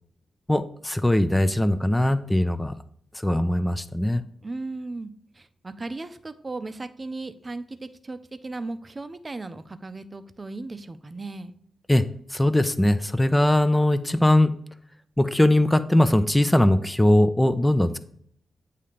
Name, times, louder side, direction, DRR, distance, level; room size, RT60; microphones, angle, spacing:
voice 1, 0.5-2.8 3.2-4.2 11.9-12.0 12.3-14.5 15.2-18.0, left 1 dB, 10° left, 11 dB, 0.5 m, -20 dB
voice 2, 4.4-11.6, right 2 dB, 35° right, 11 dB, 0.6 m, -36 dB
8.3 x 2.8 x 5.1 m, 0.64 s
supercardioid pair, 40°, 0 cm